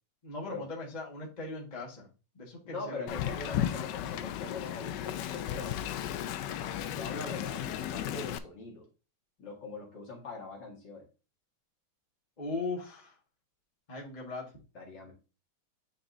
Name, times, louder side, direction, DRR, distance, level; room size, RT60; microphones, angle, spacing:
voice 1, 0.2-2.1 2.3-3.8 12.4-13.1 13.9-14.5, left 3 dB, 20° left, -2 dB, 1.4 m, -39 dB
voice 2, 2.6-5.8 6.5-8.9 9.4-11.0 14.7-15.1, left 3 dB, 55° left, -1 dB, 2.5 m, -42 dB
Wind, 3.1-8.4, left 11 dB, 90° left, 0.9 m, -35 dB
9.3 x 4.2 x 2.6 m, 0.32 s
omnidirectional pair, 2.4 m